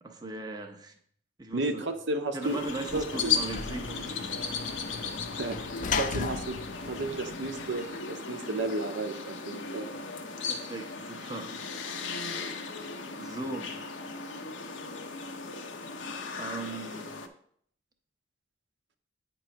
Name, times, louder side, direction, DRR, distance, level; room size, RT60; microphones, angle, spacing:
voice 1, 0.0-0.9 1.4-1.9 2.3-4.4 10.4-11.6 13.0-13.8 16.4-17.1, right 3 dB, 20° right, 4 dB, 0.7 m, -39 dB
voice 2, 1.5-2.6 2.9-3.4 5.4-5.6 5.9-6.6 6.8-9.9, right 2 dB, 75° right, 6 dB, 0.7 m, -32 dB
sound 1, 2.4-17.3, left 5 dB, 85° left, 0.7 m, -36 dB
Sliding door / Slam, 2.6-8.0, left 5 dB, 45° left, 0.4 m, -37 dB
8.8 x 3.1 x 5.7 m, 0.64 s
head